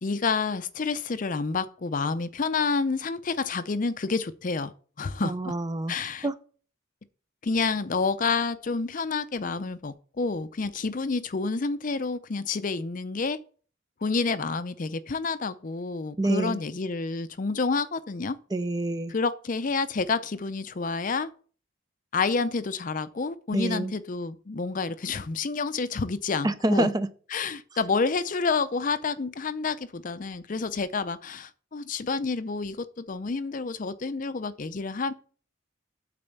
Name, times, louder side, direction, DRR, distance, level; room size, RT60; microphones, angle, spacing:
voice 1, 0.0-4.7 5.0-5.5 5.9-6.3 7.4-13.4 14.0-18.4 19.1-21.3 22.1-26.9 27.3-35.1, left 4 dB, 40° left, 0.5 m, -29 dB
voice 2, 5.2-5.9 6.2-6.3 16.2-16.6 18.5-19.1 23.5-23.9 26.4-27.1, right 1 dB, 20° right, 0.4 m, -26 dB
8.6 x 4.1 x 6.9 m
head